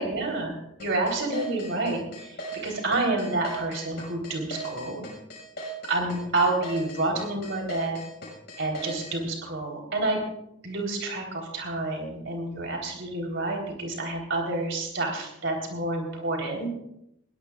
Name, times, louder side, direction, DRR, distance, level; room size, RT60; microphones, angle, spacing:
voice 1, 0.0-5.0 5.9-8.0 8.6-10.2 10.6-16.7, right 2 dB, 60° right, 1 dB, 3.9 m, -29 dB
sound 1, 0.8-9.1, right 1 dB, 50° left, 6.0 m, -38 dB
21.0 x 17.0 x 2.5 m, 0.80 s
head